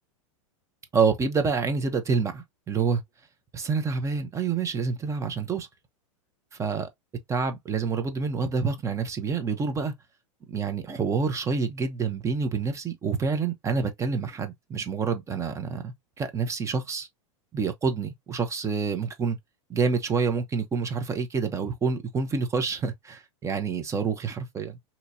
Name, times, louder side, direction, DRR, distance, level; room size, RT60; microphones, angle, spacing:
voice 1, 0.9-3.0 3.5-5.7 6.6-6.9 7.3-9.9 10.5-17.1 17.5-19.4 19.7-24.8, right 5 dB, 15° right, 0.8 m, -27 dB
4.0 x 2.9 x 2.7 m
hypercardioid pair, 120°, 17 cm